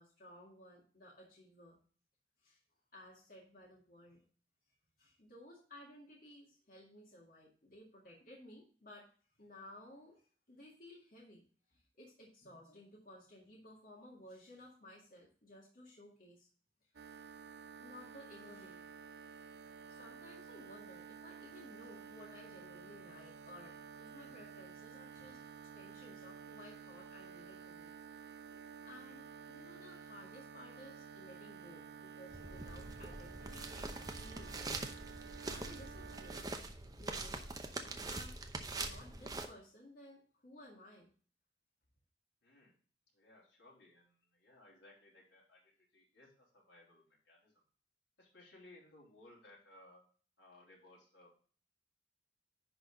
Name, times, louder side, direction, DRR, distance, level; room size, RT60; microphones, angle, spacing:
voice 1, 0.0-1.8 2.4-2.6 2.9-4.2 5.0-9.1 9.4-11.4 11.7-16.5 16.8-16.9 17.8-18.9 19.9-25.4 25.7-27.9 28.5-33.9 34.2-34.9 35.2-36.4 37.0-38.4 38.8-41.1, left 1 dB, 50° left, -3 dB, 2.0 m, -57 dB
sound 1, 16.9-36.4, right 6 dB, 60° right, 0.5 m, -52 dB
sound 2, 32.3-39.4, right 3 dB, 20° right, 0.8 m, -44 dB
voice 2, 42.4-42.8 43.1-47.6 48.2-50.0 50.4-51.3, left 2 dB, 85° left, -3 dB, 3.4 m, -61 dB
10.5 x 4.1 x 3.9 m, 0.43 s
head